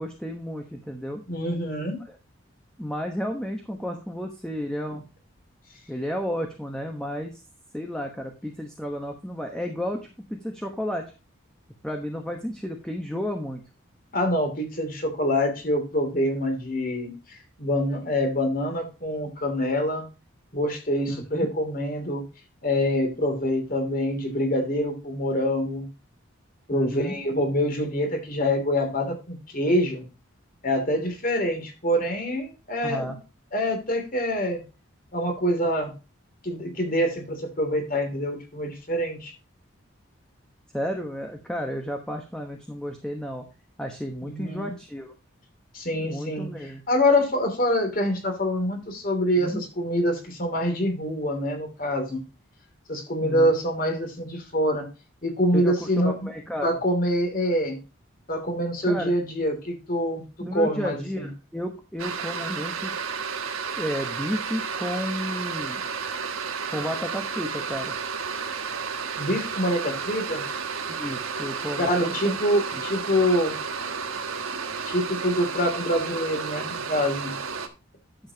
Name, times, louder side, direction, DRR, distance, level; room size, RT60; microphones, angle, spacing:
voice 1, 0.0-1.2 2.8-5.0 5.9-7.4 7.7-11.1 11.8-13.6 21.1-21.5 26.7-27.2 32.8-33.2 40.7-43.4 43.8-45.1 45.9-46.8 49.4-49.6 53.2-53.5 55.5-56.7 58.8-59.1 60.4-63.0 63.8-65.8 66.7-67.9 70.9-72.4 72.7-72.8, equal, 5° left, 3 dB, 1.1 m, -32 dB
voice 2, 1.3-2.0 14.1-20.1 20.5-22.2 22.6-25.9 26.7-30.0 30.6-33.2 33.5-34.6 35.1-35.9 36.4-39.3 44.2-44.7 45.7-52.2 52.9-54.9 55.2-56.3 56.6-57.8 58.3-60.2 60.5-61.3 69.2-70.4 71.8-73.5 74.9-77.3, equal, 40° left, 4 dB, 2.8 m, -25 dB
sound 1, 62.0-77.7, right 5 dB, 80° right, 1.4 m, -32 dB
11.5 x 7.2 x 2.8 m, 0.30 s
head